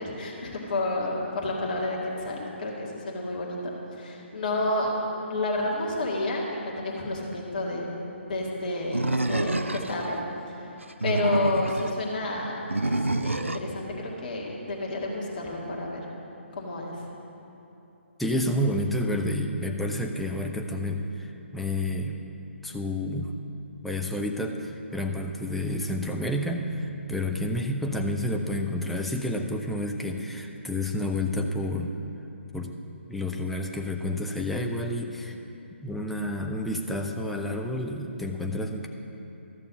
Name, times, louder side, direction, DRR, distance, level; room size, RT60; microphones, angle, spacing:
voice 1, 0.0-3.6 3.9-4.9 5.2-7.9 8.2-10.2 11.0-12.6 12.8-16.0 16.5-17.1, left 2 dB, 40° left, -3 dB, 1.9 m, -30 dB
Animal, 8.9-10.1 10.8-11.9 12.7-13.7, right 2 dB, 85° right, 0.4 m, -27 dB
voice 2, 18.2-22.2 22.6-23.3 23.8-31.9 32.5-32.7 33.1-35.4 35.8-38.9, left 1 dB, ahead, 2 dB, 0.4 m, -29 dB
13.5 x 6.7 x 5.2 m, 3.0 s
figure-of-eight pair, 140°, 7 cm